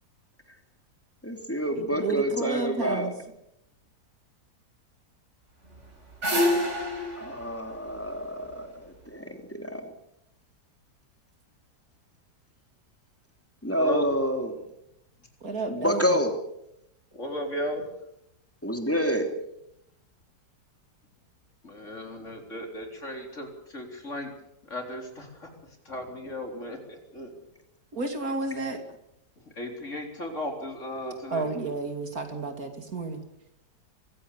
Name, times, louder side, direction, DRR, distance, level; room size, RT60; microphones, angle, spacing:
voice 1, 1.2-3.1 7.2-9.9 13.6-14.5 15.7-16.3 18.6-19.3, equal, 10° left, 5 dB, 3.1 m, -28 dB
voice 2, 1.8-3.1 15.4-16.2 27.9-28.8 31.3-33.2, right 3 dB, 55° right, 6 dB, 3.1 m, -31 dB
sound 1, 5.7-8.9, left 1 dB, 40° right, 5.3 m, -28 dB
voice 3, 17.1-17.8 21.6-24.3 24.6-25.5 25.8-27.3 29.5-31.5, left 1 dB, 45° left, 3 dB, 4.3 m, -35 dB
23.5 x 16.0 x 8.4 m, 0.80 s
omnidirectional pair, 1.8 m